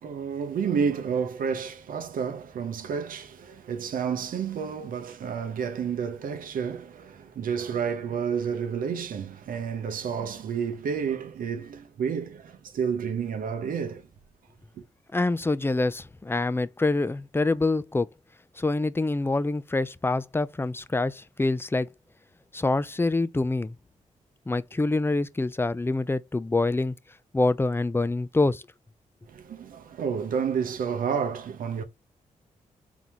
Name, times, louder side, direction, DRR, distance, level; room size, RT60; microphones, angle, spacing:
voice 1, 0.0-14.1 14.8-14.9 29.3-31.8, right 6 dB, 80° right, 0.8 m, -30 dB
voice 2, 15.1-18.1 18.6-21.9 22.5-23.7 24.5-26.9 27.3-28.6, left 2 dB, 15° left, 0.5 m, -26 dB
4.1 x 3.6 x 3.0 m
supercardioid pair, 55°, 14 cm